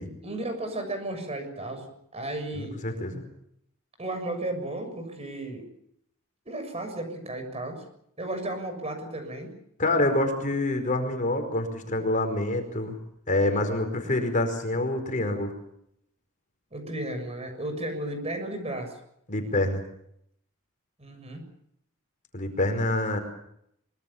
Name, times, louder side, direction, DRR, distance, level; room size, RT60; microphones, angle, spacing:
voice 1, 0.2-1.9 2.1-2.7 4.0-5.7 6.5-7.8 8.2-9.5 16.7-19.0 21.0-21.4, right 1 dB, 30° right, 6 dB, 6.9 m, -34 dB
voice 2, 2.5-3.2 9.8-13.0 13.3-15.5 19.3-19.8 22.3-23.2, left 2 dB, 40° left, 6 dB, 4.9 m, -26 dB
25.0 x 23.5 x 7.3 m, 0.73 s
head